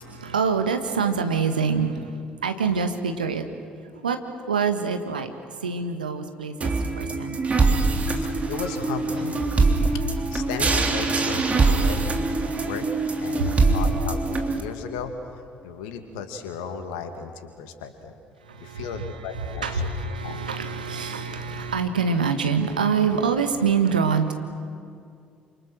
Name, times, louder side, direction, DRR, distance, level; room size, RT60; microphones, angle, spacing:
voice 1, 0.0-3.4 3.9-5.3 5.6-7.4 9.2-9.3 12.5-12.6 13.4-13.7 18.4-24.3, right 5 dB, 80° right, 7 dB, 1.6 m, -26 dB
sound 1, 6.6-14.6, right 3 dB, 30° right, 3.5 m, -23 dB
voice 2, 8.2-9.4 9.9-10.0 10.3-12.1 12.6-12.9 13.2-15.1 15.6-18.2 18.6-19.8 20.2-20.4, left 6 dB, 70° left, 7 dB, 2.3 m, -35 dB
28.5 x 27.5 x 6.4 m, 2.3 s
figure-of-eight pair, 50°, 5 cm